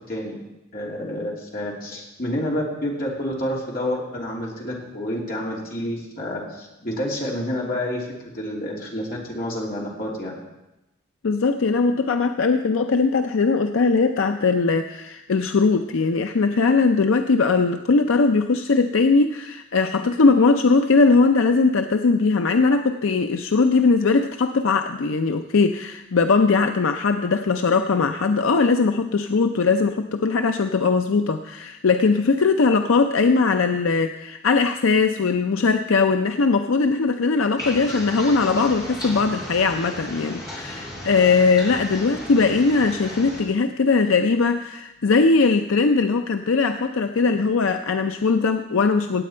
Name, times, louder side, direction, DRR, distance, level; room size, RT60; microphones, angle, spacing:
voice 1, 0.1-0.4 0.7-10.4, left 1 dB, 45° left, -3 dB, 2.9 m, -29 dB
voice 2, 11.2-49.2, left 4 dB, 80° left, 7 dB, 0.5 m, -20 dB
sound 1, 37.6-43.4, left 1 dB, 15° left, 4.0 m, -35 dB
17.0 x 8.5 x 4.4 m, 0.96 s
head